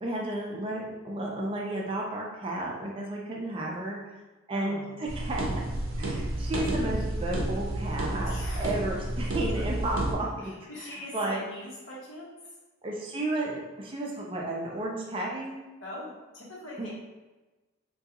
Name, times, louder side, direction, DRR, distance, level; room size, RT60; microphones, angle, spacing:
voice 1, 0.0-4.0 4.5-5.6 6.0-11.4 12.8-15.6 16.8-16.9, right 1 dB, 25° right, -2 dB, 0.4 m, -33 dB
voice 2, 4.5-5.1 8.2-8.7 9.5-9.6 10.4-12.3 15.8-16.1 16.3-16.9, left 1 dB, 65° left, -5 dB, 0.9 m, -42 dB
sound 1, 5.1-10.1, right 1 dB, 75° right, 0.6 m, -31 dB
3.4 x 2.3 x 2.8 m, 1.1 s
head